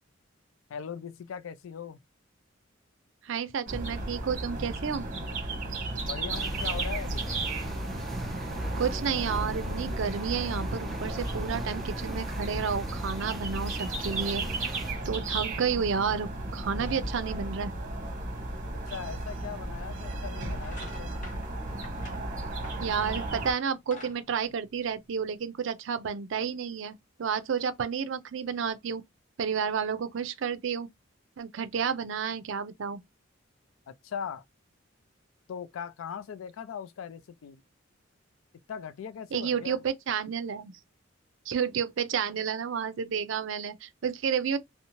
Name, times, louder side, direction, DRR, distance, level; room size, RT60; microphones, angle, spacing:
voice 1, 0.7-2.0 6.0-7.3 18.9-21.1 33.9-34.4 35.5-37.6 38.7-39.8, left 7 dB, 80° left, 0.4 m, -39 dB
voice 2, 3.2-5.1 8.8-14.4 15.1-17.7 22.8-29.0 29.4-30.9 31.4-33.0 39.3-40.7 41.5-44.6, right 6 dB, 65° right, 0.4 m, -31 dB
sound 1, 3.7-23.5, right 2 dB, 40° right, 0.9 m, -34 dB
sound 2, 6.3-14.9, equal, ahead, 0.4 m, -40 dB
sound 3, 20.0-20.2 20.6-23.3 23.7-25.3, left 2 dB, 40° left, 0.8 m, -48 dB
2.6 x 2.0 x 2.9 m
head